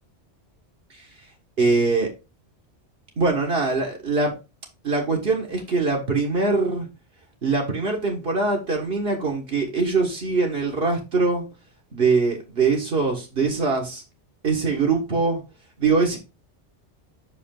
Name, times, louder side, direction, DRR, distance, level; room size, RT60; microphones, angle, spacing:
voice 1, 1.6-2.1 3.2-4.3 4.8-6.9 7.4-11.4 11.9-14.0 14.4-15.4 15.8-16.2, right 4 dB, 55° right, 1.6 m, -22 dB
5.9 x 5.1 x 3.7 m
omnidirectional pair, 1.2 m